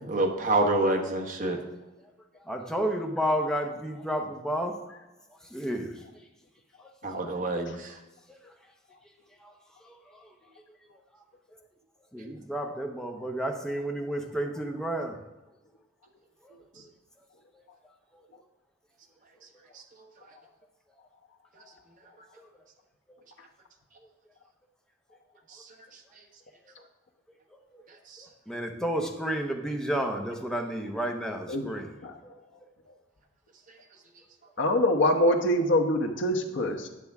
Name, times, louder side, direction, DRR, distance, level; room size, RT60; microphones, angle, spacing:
voice 1, 0.0-1.6 7.0-7.9, right 2 dB, 45° right, 2 dB, 1.1 m, -27 dB
voice 2, 2.5-4.8 5.5-6.0 8.3-8.4 9.4-9.5 9.8-10.3 12.1-15.2 16.4-16.5 18.1-18.2 22.4-22.5 27.7-27.8 28.2-31.9 32.2-32.3, right 1 dB, 5° left, 3 dB, 0.8 m, -31 dB
voice 3, 34.6-36.9, left 1 dB, 80° left, 3 dB, 1.0 m, -24 dB
10.0 x 6.9 x 3.6 m, 1.1 s
head